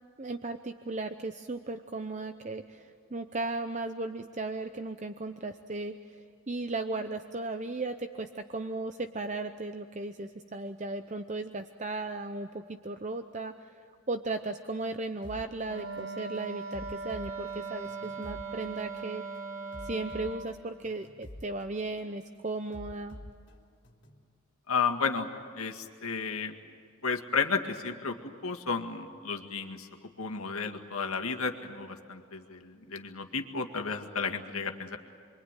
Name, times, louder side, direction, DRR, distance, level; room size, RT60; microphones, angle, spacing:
voice 1, 0.2-19.2 19.8-23.2, right 2 dB, 35° right, 8 dB, 0.7 m, -36 dB
sound 1, 15.2-15.4 16.0-16.2 16.7-18.4 19.0-19.2 19.7-21.4 22.0-22.2 22.7-24.2, equal, 55° left, 2.9 m, -47 dB
Wind instrument woodwind instrument, 15.6-20.5, right 4 dB, 70° right, 3.2 m, -39 dB
voice 2, 24.7-26.5 27.0-35.0, left 5 dB, 80° left, 3 dB, 2.0 m, -33 dB
28.5 x 23.0 x 9.1 m, 2.2 s
head